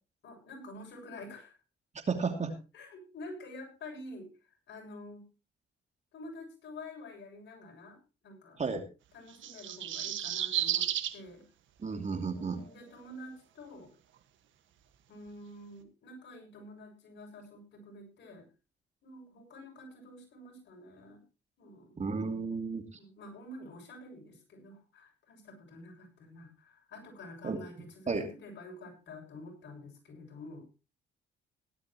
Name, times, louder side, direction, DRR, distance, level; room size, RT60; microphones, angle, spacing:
voice 1, 0.2-1.5 2.7-4.3 4.7-5.3 6.1-8.6 9.1-11.4 12.4-13.9 15.1-18.5 19.0-21.2 21.6-22.0 22.9-30.7, left 1 dB, 65° left, 2 dB, 7.2 m, -48 dB
voice 2, 2.1-2.6 8.6-8.8 11.8-12.6 22.0-22.8 27.4-27.6 28.1-28.3, right 4 dB, 35° right, 6 dB, 2.7 m, -32 dB
sound 1, 9.3-11.2 12.6-12.7, right 11 dB, 75° right, 1.7 m, -32 dB
17.0 x 12.5 x 3.0 m, 0.31 s
cardioid pair, 90°, 20 cm